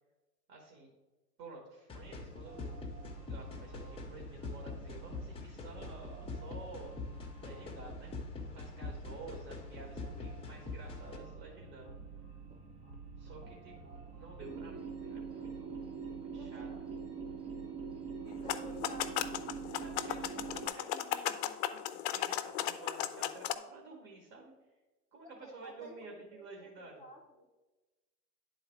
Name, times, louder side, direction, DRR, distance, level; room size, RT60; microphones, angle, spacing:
voice 1, 0.5-0.9 1.4-2.7 3.3-6.9 7.4-8.1 8.4-11.9 13.2-16.0 16.3-16.7 18.2-18.4 19.8-24.5 25.1-27.0, right 3 dB, 45° right, 0 dB, 1.6 m, -52 dB
sound 1, 1.9-11.2, left 4 dB, 10° left, 0.8 m, -44 dB
sound 2, 2.0-20.7, right 5 dB, 80° right, 2.5 m, -46 dB
voice 2, 16.4-17.0 18.4-19.3 25.4-25.9 26.3-27.5, right 1 dB, 15° right, -1 dB, 0.3 m, -52 dB
sound 3, 18.3-23.5, left 12 dB, 45° left, 0.5 m, -36 dB
9.3 x 4.0 x 4.5 m, 1.2 s
hypercardioid pair, 115°, 47 cm